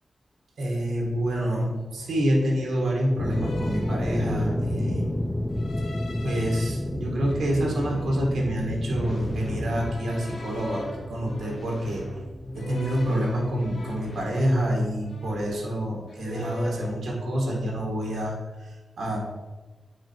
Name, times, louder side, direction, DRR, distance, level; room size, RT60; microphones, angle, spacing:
voice 1, 0.6-5.2 6.2-12.1 12.5-19.2, equal, 85° right, -1 dB, 1.8 m, -27 dB
sound 1, 0.9-1.1 2.0-2.5 3.3-4.7 5.5-6.7 7.3-8.8 9.6-12.0 12.6-14.8 15.1-15.8 16.1-17.0, left 2 dB, 80° left, 1.2 m, -43 dB
sound 2, 3.2-10.0, left 1 dB, 15° left, 0.7 m, -29 dB
sound 3, 8.9-14.2, equal, 45° left, 1.7 m, -40 dB
8.7 x 4.2 x 4.5 m, 1.2 s
wide cardioid pair, 80°, 0 cm